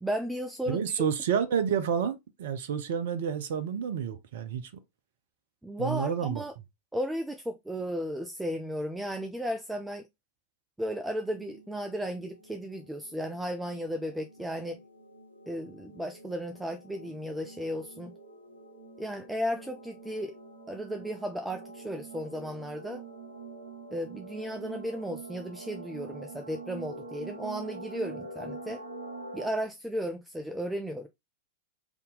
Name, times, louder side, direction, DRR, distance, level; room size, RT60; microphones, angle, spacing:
voice 1, 0.0-1.0 5.6-6.5 6.9-10.0 10.8-14.8 15.5-18.1 19.0-20.4 20.7-23.0 23.9-28.8 29.3-31.1, equal, 5° right, 0.4 m, -34 dB
voice 2, 0.7-4.7 5.8-6.4, right 7 dB, 55° right, 0.5 m, -29 dB
sound 1, 11.2-29.5, right 3 dB, 90° left, 0.7 m, -45 dB
3.5 x 2.8 x 3.6 m
figure-of-eight pair, 90°, 0 cm